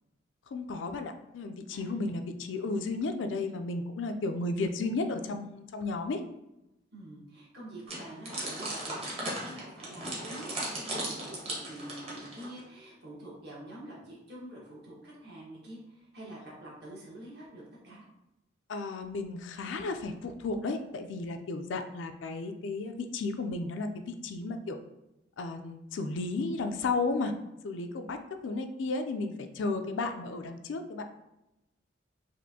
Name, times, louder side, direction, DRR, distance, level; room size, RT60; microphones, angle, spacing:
voice 1, 0.5-6.2 18.7-24.8 25.4-27.3 27.6-28.2 28.4-31.0, left 3 dB, 80° left, 7 dB, 0.4 m, -33 dB
voice 2, 4.3-4.9 6.9-18.0, right 1 dB, 60° right, -6 dB, 1.3 m, -46 dB
sound 1, 7.9-12.6, right 1 dB, 30° right, 1.0 m, -37 dB
4.2 x 2.5 x 2.7 m, 0.90 s
head